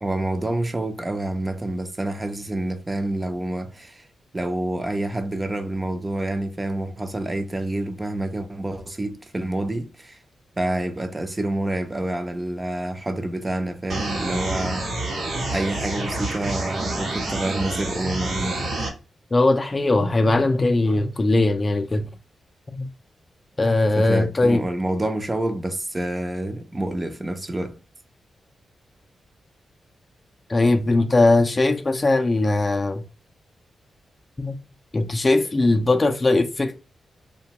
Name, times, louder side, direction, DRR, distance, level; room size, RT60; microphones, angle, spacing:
voice 1, 0.0-4.1 4.3-10.2 10.6-14.9 15.5-18.7 24.0-27.8, right 1 dB, 25° right, 0.5 m, -28 dB
sound 1, 13.9-18.9, right 2 dB, 75° right, 0.9 m, -28 dB
voice 2, 19.3-22.1 22.7-22.9 23.6-24.6 30.5-33.0 34.4-34.6 34.9-36.8, left 2 dB, 30° left, 0.4 m, -20 dB
2.8 x 2.2 x 2.8 m
cardioid pair, 70°, 0 cm